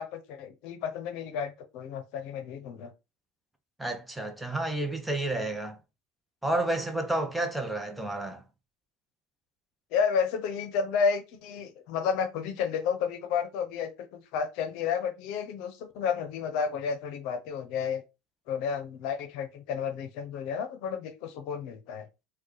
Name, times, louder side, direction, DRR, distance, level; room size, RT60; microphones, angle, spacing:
voice 1, 0.0-2.9 9.9-18.0 18.5-22.0, left 6 dB, 65° left, 0.7 m, -31 dB
voice 2, 3.8-5.8 6.4-8.4, right 1 dB, 5° right, 0.7 m, -30 dB
4.4 x 2.3 x 3.1 m
supercardioid pair, 115°, 0 cm